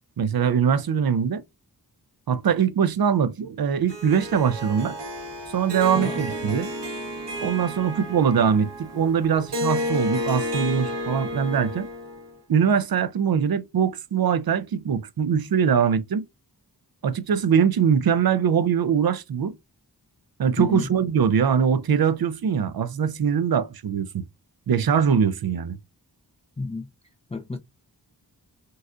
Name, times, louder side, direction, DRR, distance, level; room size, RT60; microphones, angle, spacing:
voice 1, 0.2-1.4 2.3-5.0 5.5-6.7 7.4-11.9 12.5-16.3 17.0-19.5 20.4-24.3 24.7-25.8, right 7 dB, 60° right, 0.5 m, -22 dB
Harp, 3.9-12.3, left 1 dB, 80° right, 1.3 m, -31 dB
voice 2, 20.6-20.9 26.6-26.9 27.3-27.6, left 3 dB, 15° left, 0.5 m, -30 dB
4.0 x 2.3 x 2.4 m
cardioid pair, 45°, 41 cm